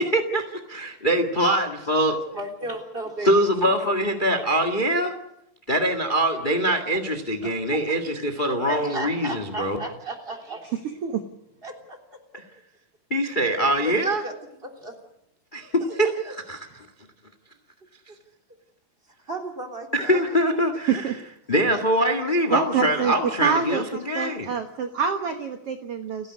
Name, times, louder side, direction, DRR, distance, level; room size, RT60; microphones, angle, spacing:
voice 1, 0.0-2.2 3.2-5.1 5.7-9.8 12.3-12.4 13.1-14.2 15.5-16.7 19.9-21.0 21.5-24.5, right 1 dB, 35° left, 7 dB, 0.7 m, -23 dB
voice 2, 2.3-3.7 7.4-7.6 8.7-10.7 11.6-12.0 12.3-12.4 13.8-13.9 14.2-15.0 16.0-16.3 19.3-20.2 20.9-21.0, right 1 dB, 15° right, 3 dB, 2.9 m, -35 dB
voice 3, 22.5-23.1 23.4-23.8 24.1-26.3, right 6 dB, 65° right, 6 dB, 1.5 m, -26 dB
30.0 x 11.0 x 9.7 m, 0.83 s
omnidirectional pair, 4.5 m